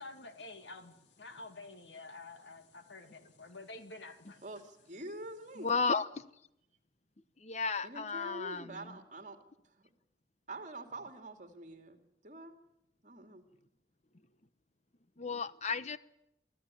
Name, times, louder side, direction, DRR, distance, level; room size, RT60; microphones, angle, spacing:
voice 1, 0.0-4.4, left 2 dB, 90° left, 7 dB, 2.4 m, -49 dB
voice 2, 4.4-5.7 7.8-9.4 9.6-9.9 10.5-12.5 13.0-13.5, right 1 dB, 45° right, 5 dB, 2.7 m, -46 dB
voice 3, 5.6-6.1 7.4-9.0 15.2-16.0, left 4 dB, 40° left, 14 dB, 0.9 m, -33 dB
24.5 x 14.5 x 9.9 m, 0.83 s
head